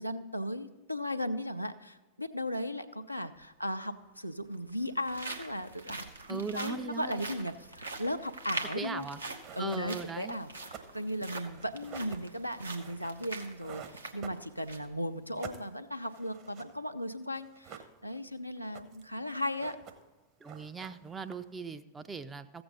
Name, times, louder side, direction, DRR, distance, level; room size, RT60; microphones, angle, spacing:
voice 1, 0.0-9.1 9.5-19.8, equal, 90° left, 7 dB, 0.5 m, -36 dB
sound 1, 3.3-3.4 4.4-14.9 15.3-15.4 16.0-16.2, right 3 dB, 80° right, 0.9 m, -44 dB
voice 2, 6.3-7.2 8.8-9.2 9.6-10.4 20.4-22.6, right 5 dB, 15° right, 10 dB, 0.5 m, -39 dB
sound 2, 9.4-14.9 15.2-16.8 17.0-17.1 17.4-18.3 18.6-19.2 19.4-20.2 20.4-21.7, right 7 dB, 40° right, 1.1 m, -49 dB
14.5 x 7.8 x 4.0 m, 1.2 s
figure-of-eight pair, 90°, 0 cm